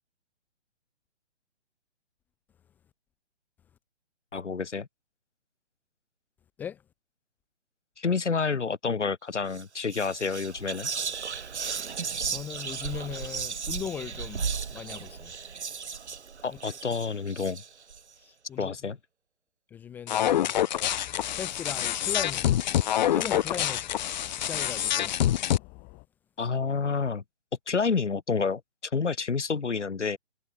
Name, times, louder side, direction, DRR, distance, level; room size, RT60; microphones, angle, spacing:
voice 1, 4.3-4.9 8.0-10.9 16.4-17.6 18.6-19.0 26.4-27.2 27.7-28.6 28.9-30.2, left 5 dB, 80° left, 2.2 m, -29 dB
Whispering, 9.4-9.6 9.9-18.0, right 6 dB, 70° right, 4.2 m, -35 dB
voice 2, 12.2-15.4 16.5-16.6 18.2-18.7 19.7-20.5 21.3-23.9 24.4-25.1, left 8 dB, 5° left, 0.6 m, -38 dB
sound 1, 20.1-25.6, left 11 dB, 40° left, 1.0 m, -26 dB
sound 2, 20.7-26.1, left 27 dB, 25° left, 6.0 m, -50 dB
figure-of-eight pair, 140°, 35 cm